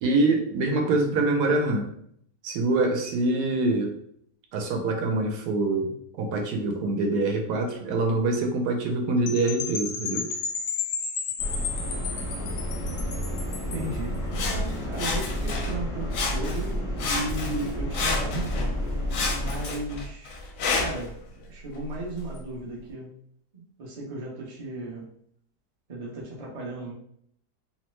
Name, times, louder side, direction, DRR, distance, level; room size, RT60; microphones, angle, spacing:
voice 1, 0.0-1.9 2.4-3.9 4.5-10.3, right 2 dB, 75° right, 3 dB, 1.1 m, -25 dB
Percussion / Wind chime, 9.3-13.9, left 6 dB, 85° left, 1.2 m, -33 dB
sound 1, 11.4-19.6, equal, 40° left, 0.4 m, -31 dB
voice 2, 13.7-18.8 19.4-20.4 20.7-23.1 23.5-25.1 25.9-26.9, right 2 dB, 50° right, -4 dB, 0.4 m, -35 dB
Sawing, 14.3-15.8 16.1-16.7 17.0-18.7 19.1-21.1 21.8-21.9, left 3 dB, 70° left, 0.9 m, -30 dB
3.0 x 2.1 x 3.0 m, 0.67 s
omnidirectional pair, 1.8 m